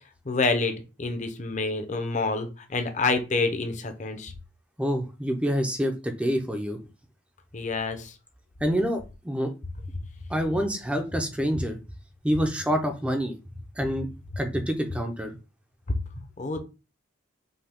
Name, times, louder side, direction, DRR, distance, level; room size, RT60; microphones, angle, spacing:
voice 1, 0.3-4.3 7.5-8.1 15.9-16.0 16.4-16.6, left 3 dB, 35° left, 7 dB, 0.7 m, -27 dB
voice 2, 4.8-6.8 8.6-9.5 10.3-11.8 12.2-13.3 13.8-14.1 14.4-15.3, equal, 5° right, 5 dB, 0.5 m, -27 dB
5.5 x 2.2 x 3.5 m, 0.30 s
head